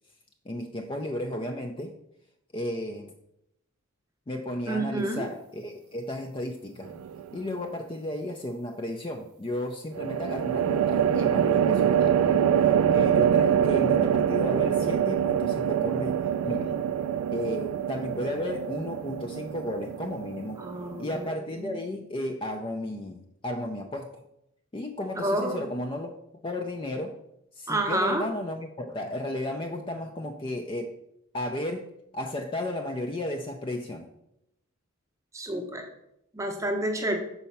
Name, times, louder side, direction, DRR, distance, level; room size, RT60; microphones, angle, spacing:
voice 1, 0.5-1.9 2.5-3.1 4.3-7.0 7.3-16.2 16.4-16.8 17.3-20.6 21.0-24.2 24.7-26.1 26.4-27.2 27.6-30.9 31.3-31.9 32.1-34.1, left 1 dB, 25° left, 4 dB, 0.4 m, -34 dB
voice 2, 4.7-5.3 20.6-21.3 21.6-21.7 25.2-25.7 27.7-28.3 35.3-35.8 36.3-37.2, right 1 dB, 15° right, 3 dB, 0.7 m, -29 dB
sound 1, 6.8-7.4 9.9-21.3, right 9 dB, 85° right, 0.3 m, -25 dB
5.6 x 4.1 x 5.6 m, 0.80 s
head